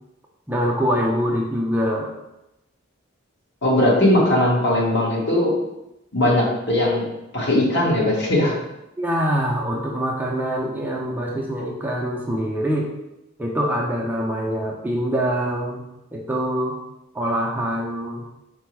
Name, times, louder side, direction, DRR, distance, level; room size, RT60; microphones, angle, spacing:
voice 1, 0.5-2.1 9.0-12.9 13.4-15.8 16.1-16.8 17.1-18.2, equal, 10° right, -2 dB, 0.4 m, -24 dB
voice 2, 3.6-5.6 6.1-7.0 7.3-8.5, left 1 dB, 60° left, -4 dB, 1.2 m, -19 dB
4.3 x 2.0 x 4.5 m, 0.91 s
head